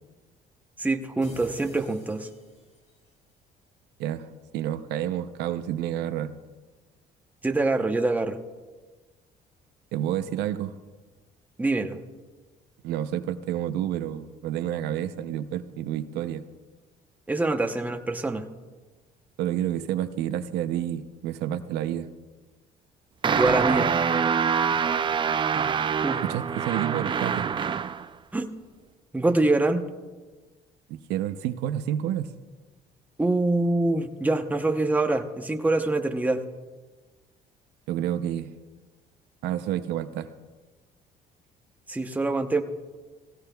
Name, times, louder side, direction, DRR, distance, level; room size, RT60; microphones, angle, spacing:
voice 1, 0.8-2.3 7.4-8.4 11.6-12.0 17.3-18.4 23.2-23.9 26.0-26.2 28.3-28.5 29.1-29.9 33.2-36.4 41.9-42.6, right 2 dB, 10° right, 5 dB, 0.8 m, -25 dB
sound 1, 1.2-3.0, left 2 dB, 45° left, 3.7 m, -49 dB
voice 2, 4.0-6.4 9.9-10.7 12.8-16.4 19.4-22.1 26.2-27.5 30.9-32.3 37.9-38.5 39.4-40.3, right 11 dB, 90° right, 10 dB, 0.6 m, -29 dB
sound 2, 23.2-28.1, right 6 dB, 30° right, 0.4 m, -25 dB
17.5 x 16.5 x 2.3 m, 1.3 s
cardioid pair, 110°, 17 cm